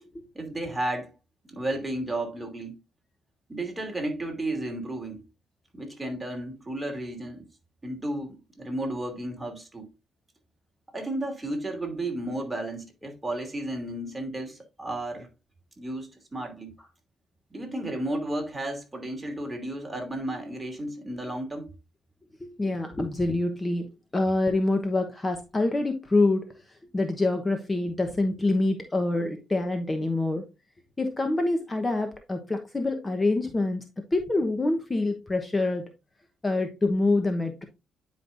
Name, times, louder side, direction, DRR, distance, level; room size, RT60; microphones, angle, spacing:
voice 1, 0.3-1.1 1.4-2.8 3.5-5.2 5.7-7.5 7.8-9.9 10.9-15.3 15.8-16.7 17.5-21.7, right 1 dB, 15° right, 2.7 m, -33 dB
voice 2, 22.4-30.4 31.0-33.8 34.1-35.9 36.4-37.7, left 2 dB, 20° left, 1.0 m, -26 dB
9.8 x 5.1 x 2.6 m
cardioid pair, 90°, 0 cm